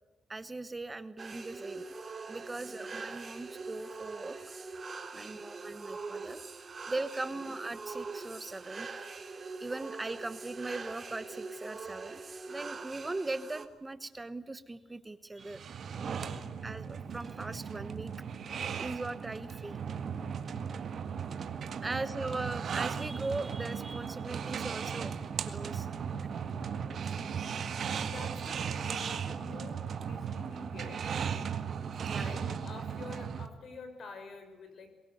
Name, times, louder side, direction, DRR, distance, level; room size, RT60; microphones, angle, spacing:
voice 1, 0.3-1.9 2.3-4.6 5.1-6.4 6.9-8.9 9.6-15.6 16.1-18.1 18.5-19.8 21.8-25.1 25.4-25.9 32.1-32.3, right 2 dB, 20° right, 13 dB, 1.1 m, -39 dB
sound 1, 1.2-13.7, right 4 dB, 35° right, 2.6 m, -43 dB
sound 2, 15.4-33.5, right 7 dB, 55° right, 1.9 m, -37 dB
voice 2, 16.3-16.8 20.7-21.1 21.9-22.2 26.5-31.1 31.5-35.0, left 3 dB, 55° left, 8 dB, 5.3 m, -49 dB
23.5 x 21.5 x 8.0 m, 1.2 s
cardioid pair, 90°, 0 cm